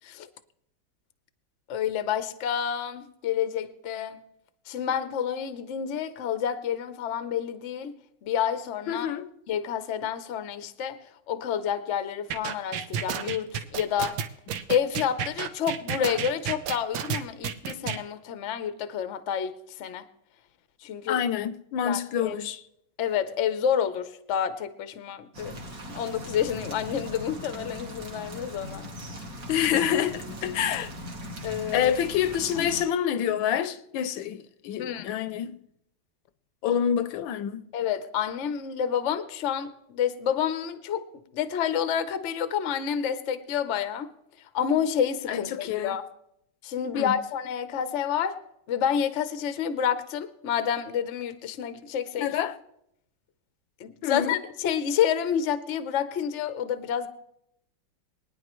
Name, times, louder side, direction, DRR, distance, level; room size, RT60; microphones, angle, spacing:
voice 1, 1.7-4.2 4.7-7.9 8.2-9.1 9.5-11.0 11.3-14.2 14.7-19.5 19.8-20.0 20.8-21.2 21.8-22.3 23.0-25.5 25.9-28.9 31.4-31.9 34.8-35.1 37.7-41.0 41.3-44.1 44.5-46.0 46.6-48.4 48.7-52.3 53.8-57.1, left 8 dB, 60° left, 0.8 m, -29 dB
voice 2, 8.9-9.3 21.1-22.6 29.5-30.9 31.7-35.5 36.6-37.6 45.3-45.9 46.9-47.2 52.2-52.6 54.0-54.4, left 9 dB, 80° left, 1.4 m, -27 dB
sound 1, 12.3-18.0, right 8 dB, 80° right, 1.5 m, -31 dB
sound 2, 25.3-32.8, equal, 50° right, 2.0 m, -39 dB
24.5 x 9.6 x 3.1 m
omnidirectional pair, 2.1 m